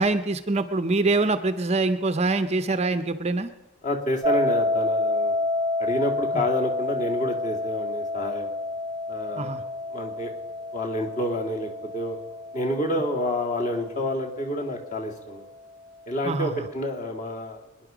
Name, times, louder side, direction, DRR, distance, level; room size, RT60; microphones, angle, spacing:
voice 1, 0.0-3.5 6.3-6.5 9.4-9.6 16.2-16.6, right 3 dB, 30° right, 11 dB, 0.6 m, -24 dB
voice 2, 3.8-5.3 5.8-8.5 9.1-9.5 9.9-10.3 10.7-12.2 12.5-15.5 16.1-17.6, left 1 dB, 35° left, 1 dB, 2.3 m, -28 dB
sound 1, 4.2-15.2, left 2 dB, 10° right, 1.1 m, -29 dB
23.5 x 10.5 x 5.0 m, 1.1 s
head